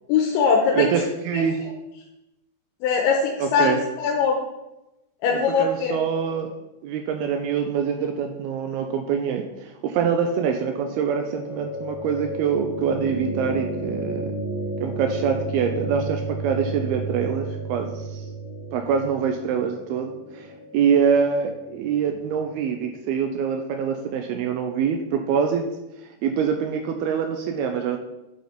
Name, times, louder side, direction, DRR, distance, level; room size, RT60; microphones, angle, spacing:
voice 1, 0.1-0.9 1.3-1.4 2.8-4.4 5.2-5.9, left 5 dB, 85° left, 0 dB, 3.2 m, -21 dB
voice 2, 0.7-1.7 3.4-3.8 5.3-6.5 6.8-14.4 14.8-18.3 18.7-25.6 26.2-28.0, right 7 dB, 85° right, 4 dB, 2.2 m, -25 dB
sound 1, 10.4-22.4, right 2 dB, 65° right, 4.4 m, -33 dB
8.1 x 6.6 x 4.3 m, 0.95 s
omnidirectional pair, 5.1 m